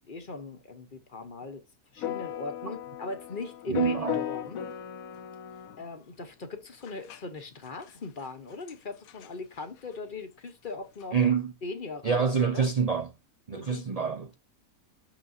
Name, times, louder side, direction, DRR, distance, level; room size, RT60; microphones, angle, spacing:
voice 1, 0.1-1.6 1.9-4.6 5.8-11.2 11.6-12.3 12.5-12.7 13.5-13.8, left 3 dB, 40° left, 1.0 m, -39 dB
sound 1, 2.0-5.8 6.9-7.2 7.9-8.0 8.2-8.3 8.7-8.8 9.1-9.3 11.0-11.1, left 11 dB, 75° left, 1.1 m, -36 dB
voice 2, 3.7-4.2 11.1-11.5 12.0-13.1 13.5-14.3, right 6 dB, 75° right, 0.3 m, -26 dB
6.2 x 6.0 x 2.6 m
omnidirectional pair, 1.5 m